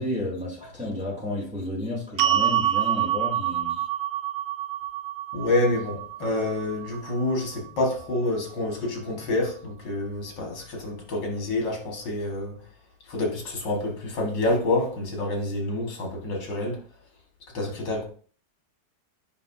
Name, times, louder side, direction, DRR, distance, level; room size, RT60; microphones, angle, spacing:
voice 1, 0.0-3.8, left 1 dB, 5° right, 2.7 m, -32 dB
sound 1, 2.2-8.4, right 12 dB, 80° right, 1.3 m, -28 dB
voice 2, 5.3-12.5 13.1-16.8 17.5-18.1, left 2 dB, 80° left, 2.4 m, -27 dB
8.5 x 5.7 x 2.7 m
omnidirectional pair, 1.9 m